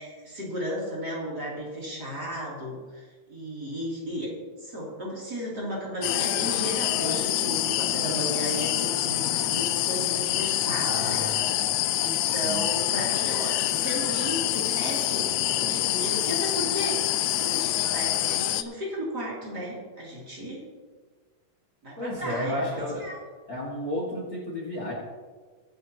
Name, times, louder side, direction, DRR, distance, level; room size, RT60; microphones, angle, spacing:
voice 1, 0.0-4.3 4.6-11.3 12.0-20.6 21.8-22.7 23.0-23.2, equal, 35° right, -5 dB, 3.4 m, -34 dB
sound 1, 6.0-18.6, left 13 dB, 85° left, 1.5 m, -26 dB
voice 2, 10.8-11.8 12.4-13.0 22.0-23.0 23.5-24.9, left 1 dB, 35° left, -3 dB, 2.1 m, -33 dB
23.5 x 9.2 x 2.9 m, 1.5 s
omnidirectional pair, 3.5 m